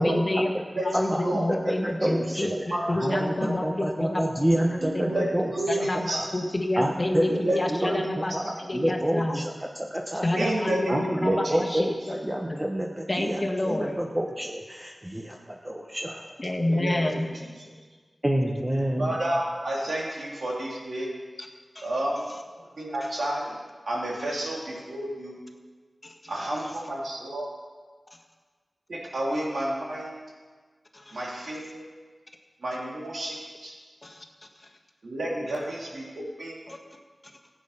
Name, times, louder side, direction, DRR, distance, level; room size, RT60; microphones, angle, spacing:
voice 1, 0.0-5.3 5.7-8.3 8.7-9.4 10.2-12.2 12.5-12.6 13.1-14.0 16.4-17.3 21.4-21.5 21.7-21.9 23.0-23.1 26.0-26.3 26.6-26.7 30.9-31.2 34.0-34.2 34.5-34.7 36.7-36.8, left 1 dB, 35° left, 1 dB, 1.7 m, -29 dB
voice 2, 1.1-1.6 1.8-2.5 2.9-5.5 5.8-5.9 6.1-6.3 6.8-7.4 7.7-7.9 8.3-9.4 9.9-10.5 10.9-13.4 13.7-16.3 18.2-19.1, right 1 dB, 15° right, 0 dB, 1.0 m, -28 dB
voice 3, 4.8-5.3 5.5-6.3 7.3-8.1 10.3-11.8 16.7-17.3 19.0-21.1 21.8-22.3 22.5-23.5 23.9-25.4 26.3-27.5 28.9-30.2 31.1-31.8 32.6-33.8 35.0-36.6, right 1 dB, 85° right, -3 dB, 3.0 m, -30 dB
15.5 x 8.7 x 5.6 m, 1.5 s
wide cardioid pair, 70°, 0 cm